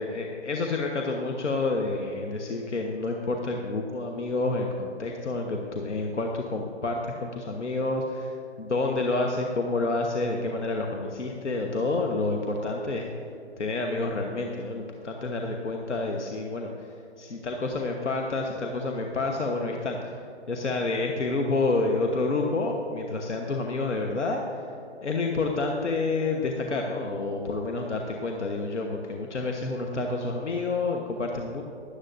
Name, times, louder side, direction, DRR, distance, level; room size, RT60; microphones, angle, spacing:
voice 1, 0.0-13.1 13.6-20.2 20.5-24.4 25.0-31.6, left 3 dB, 75° left, 2 dB, 1.2 m, -29 dB
16.5 x 11.5 x 2.6 m, 2.6 s
figure-of-eight pair, 135°, 35 cm